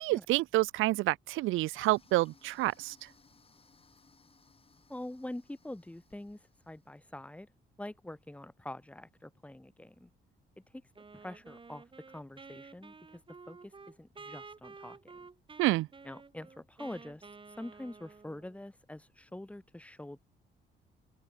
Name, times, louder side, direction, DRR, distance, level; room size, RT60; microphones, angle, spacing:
voice 1, 0.0-2.9 15.6-15.9, right 18 dB, 90° right, 0.5 m, -28 dB
Toilet flush, 1.7-6.9, left 4 dB, 30° left, 5.7 m, -64 dB
voice 2, 4.9-7.5 7.8-10.1 10.7-10.8 11.1-13.2 13.5-15.3 16.0-17.3 17.6-20.2, left 1 dB, 5° left, 1.6 m, -45 dB
Wind instrument woodwind instrument, 11.0-18.6, right 4 dB, 25° right, 1.5 m, -52 dB
cardioid pair, 90°, 20 cm